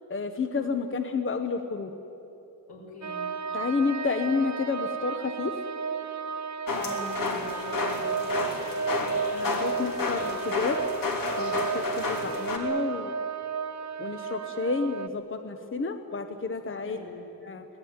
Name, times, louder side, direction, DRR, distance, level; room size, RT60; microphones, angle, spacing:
voice 1, 0.1-2.0 3.5-5.6 9.0-10.8 11.4-13.1 14.0-17.0 17.4-17.6, left 4 dB, 35° left, 7 dB, 1.0 m, -30 dB
voice 2, 2.7-3.3 6.7-8.5 16.8-17.2, left 2 dB, 85° left, -2 dB, 7.2 m, -42 dB
sound 1, 3.0-15.1, right 6 dB, 50° right, 0.6 m, -33 dB
sound 2, 6.7-12.6, left 3 dB, 60° left, 3.1 m, -31 dB
24.0 x 18.5 x 9.6 m, 3.0 s
wide cardioid pair, 155°, 38 cm